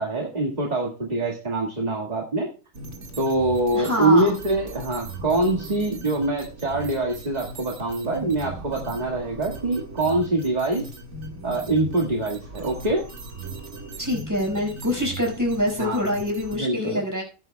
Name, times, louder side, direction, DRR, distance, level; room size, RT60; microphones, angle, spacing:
voice 1, 0.0-2.5 3.2-10.9 11.4-13.0 15.8-16.0 16.6-17.0, right 2 dB, 30° right, 0 dB, 2.0 m, -24 dB
sound 1, 2.7-16.6, right 2 dB, 60° right, 2.1 m, -38 dB
voice 2, 3.5-4.3 14.0-17.2, left 1 dB, 15° right, 0 dB, 5.5 m, -25 dB
18.5 x 9.8 x 2.3 m, 0.35 s
omnidirectional pair, 1.3 m